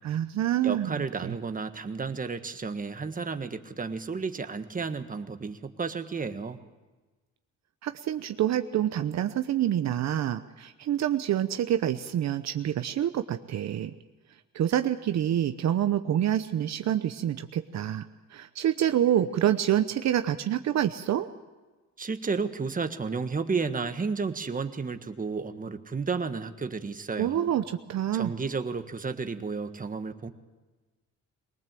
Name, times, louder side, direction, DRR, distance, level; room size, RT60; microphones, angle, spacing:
voice 1, 0.0-1.4 7.8-13.9 14.5-18.0 18.3-21.3 27.2-28.3, right 11 dB, 65° right, 9 dB, 0.9 m, -27 dB
voice 2, 0.6-6.6 22.0-27.5 28.1-30.3, right 4 dB, 25° right, 8 dB, 1.5 m, -32 dB
22.5 x 19.0 x 7.6 m, 1.2 s
cardioid pair, 90°, 30 cm